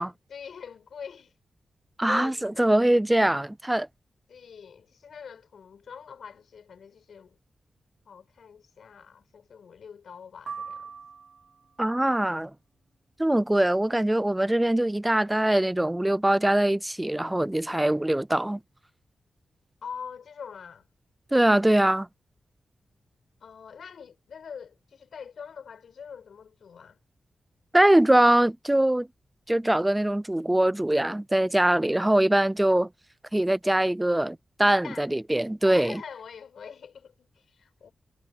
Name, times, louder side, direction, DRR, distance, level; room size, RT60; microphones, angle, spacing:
voice 1, 0.0-1.4 2.1-2.7 4.3-7.4 8.1-10.9 17.7-18.0 19.8-20.9 23.4-27.0 31.9-32.3 34.7-35.1 35.6-37.9, left 6 dB, 80° left, 6.0 m, -44 dB
voice 2, 2.0-3.9 11.8-12.5 13.2-18.6 21.3-22.1 27.7-29.1 29.5-32.9 33.3-36.0, right 1 dB, 10° right, 0.3 m, -22 dB
sound 1, 10.5-11.7, right 5 dB, 65° right, 0.7 m, -40 dB
wide cardioid pair, 140°, 0 cm